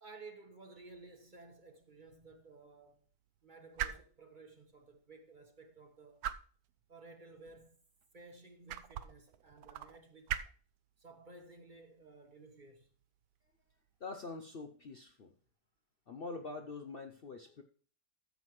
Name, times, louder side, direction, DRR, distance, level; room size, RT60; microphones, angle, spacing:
voice 1, 0.0-3.1 3.4-6.3 6.9-7.8 8.1-10.4 11.0-12.9, right 3 dB, 35° right, 1.3 m, -55 dB
sound 1, 0.8-14.3, right 10 dB, 75° right, 1.1 m, -47 dB
voice 2, 14.0-15.3 16.1-17.6, left 3 dB, 50° left, 0.7 m, -45 dB
14.0 x 7.6 x 3.1 m
omnidirectional pair, 1.6 m